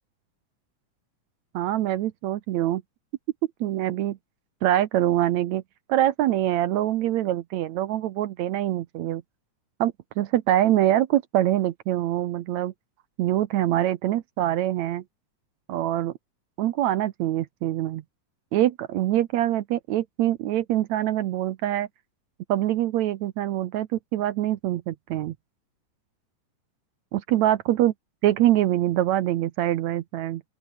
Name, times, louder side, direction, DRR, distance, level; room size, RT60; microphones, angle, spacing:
voice 1, 1.5-2.8 3.6-4.2 4.6-5.6 5.9-9.2 9.8-12.7 13.2-15.0 15.7-16.1 16.6-18.0 18.5-21.9 22.5-25.4 27.1-27.9 28.2-30.4, right 13 dB, 70° right, 2.0 m, -24 dB
open air
omnidirectional pair, 3.7 m